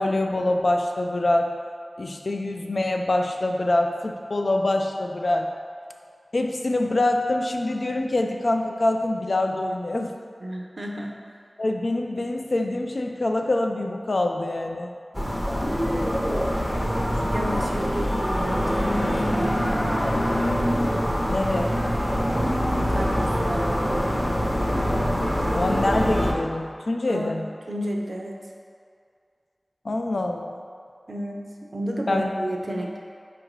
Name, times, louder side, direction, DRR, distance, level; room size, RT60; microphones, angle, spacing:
voice 1, 0.0-1.5 2.0-5.5 6.3-10.1 11.6-14.9 21.3-21.7 25.5-27.5 29.8-30.6 32.1-32.3, left 2 dB, 65° left, 3 dB, 0.3 m, -25 dB
voice 2, 10.4-11.2 17.1-19.5 22.8-23.7 27.1-27.3 27.7-28.4 31.1-31.5 31.7-33.0, equal, 55° right, 0 dB, 0.5 m, -32 dB
sound 1, 15.1-26.3, equal, 5° left, 0.5 m, -24 dB
4.3 x 2.5 x 4.7 m, 2.3 s
wide cardioid pair, 65°, 0 cm